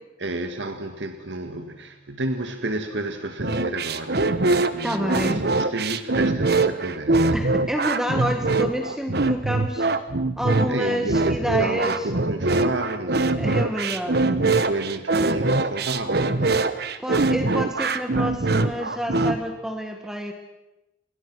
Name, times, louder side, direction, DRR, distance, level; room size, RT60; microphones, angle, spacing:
voice 1, 0.2-7.4 8.4-8.6 10.7-13.7 14.0-17.0, right 2 dB, 80° right, 7 dB, 1.9 m, -31 dB
sound 1, 3.4-19.4, right 3 dB, 60° right, 1.3 m, -23 dB
voice 2, 4.8-5.4 7.3-9.9 10.4-12.0 13.4-14.2 17.0-20.3, equal, 5° right, 4 dB, 1.8 m, -28 dB
30.0 x 24.0 x 6.3 m, 1.0 s
head